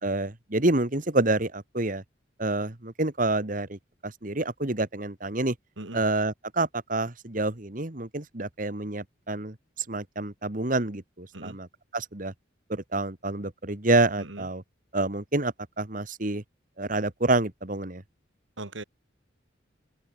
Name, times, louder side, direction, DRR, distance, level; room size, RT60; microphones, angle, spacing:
voice 1, 0.0-2.0 2.4-5.5 5.9-9.5 9.9-11.7 11.9-12.3 12.7-14.6 14.9-16.4 16.8-18.0, right 2 dB, 45° right, 1.8 m, -28 dB
voice 2, 14.2-14.5 18.6-18.8, right 2 dB, 75° right, 2.4 m, -39 dB
open air
head